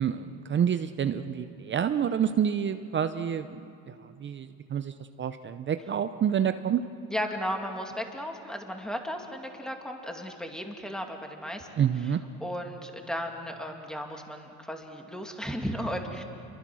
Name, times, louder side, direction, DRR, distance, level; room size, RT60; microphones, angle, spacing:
voice 1, 0.0-3.5 3.9-4.0 4.2-6.8 11.8-12.2, right 8 dB, 30° right, 10 dB, 0.7 m, -28 dB
voice 2, 7.1-11.7 12.0-16.2, equal, ahead, 3 dB, 2.4 m, -35 dB
29.0 x 23.5 x 6.3 m, 2.6 s
cardioid pair, 115°, 38 cm